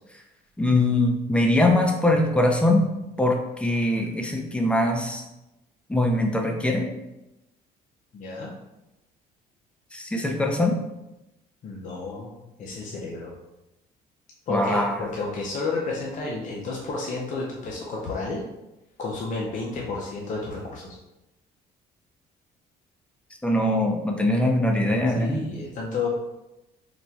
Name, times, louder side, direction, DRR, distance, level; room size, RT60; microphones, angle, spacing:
voice 1, 0.6-2.9 3.2-5.2 5.9-6.9 9.9-10.7 14.5-14.9 23.4-25.4, left 1 dB, 5° left, 2 dB, 0.6 m, -22 dB
voice 2, 8.1-8.5 11.6-12.3 12.6-13.3 14.5-18.4 19.0-21.0 25.1-26.1, left 3 dB, 50° left, -2 dB, 0.7 m, -31 dB
4.1 x 2.2 x 4.5 m, 0.95 s
cardioid pair, 110°, 17 cm